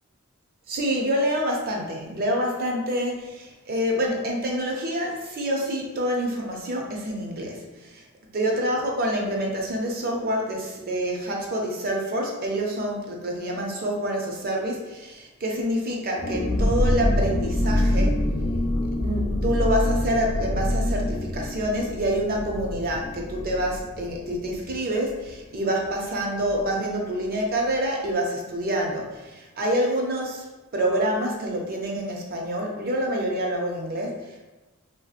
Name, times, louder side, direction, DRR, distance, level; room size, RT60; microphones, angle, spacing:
voice 1, 0.7-8.0 8.3-18.2 19.0-30.5 30.7-34.4, equal, 45° right, 0 dB, 0.5 m, -27 dB
sound 1, 16.2-25.6 25.9-26.0 26.3-26.6, left 1 dB, 25° left, 0.4 m, -26 dB
3.2 x 2.6 x 2.4 m, 1.1 s
head